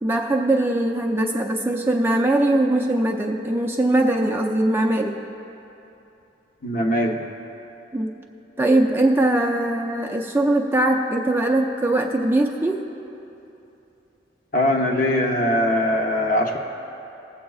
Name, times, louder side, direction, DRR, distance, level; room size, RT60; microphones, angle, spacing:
voice 1, 0.0-5.2 7.9-8.1 8.6-12.8, right 1 dB, 10° right, 1 dB, 0.4 m, -21 dB
voice 2, 6.6-7.2 14.5-16.6, left 1 dB, 45° left, 1 dB, 0.9 m, -21 dB
21.0 x 7.4 x 2.4 m, 2.9 s
head